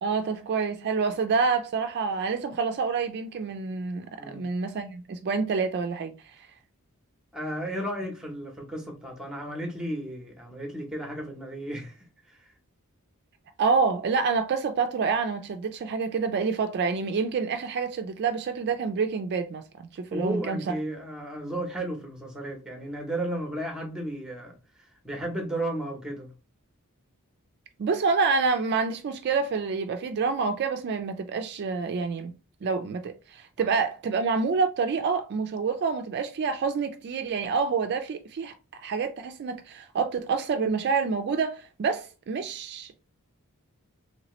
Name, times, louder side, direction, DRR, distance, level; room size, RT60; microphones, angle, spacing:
voice 1, 0.0-6.1 13.6-20.6 27.8-32.3 32.6-38.5 38.8-43.0, right 5 dB, 50° right, 0.3 m, -27 dB
voice 2, 4.2-4.5 7.3-12.0 12.3-12.5 20.1-26.3, right 1 dB, 5° right, 0.8 m, -34 dB
3.2 x 2.9 x 3.0 m
head